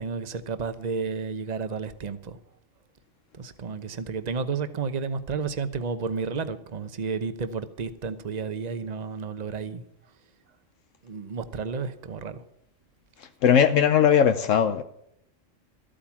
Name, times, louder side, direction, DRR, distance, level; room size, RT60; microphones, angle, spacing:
voice 1, 0.0-2.4 3.3-9.8 11.0-12.4, right 5 dB, 35° right, 0.9 m, -32 dB
voice 2, 13.2-14.8, left 8 dB, 75° left, 1.1 m, -19 dB
13.5 x 8.7 x 7.2 m
omnidirectional pair, 1.3 m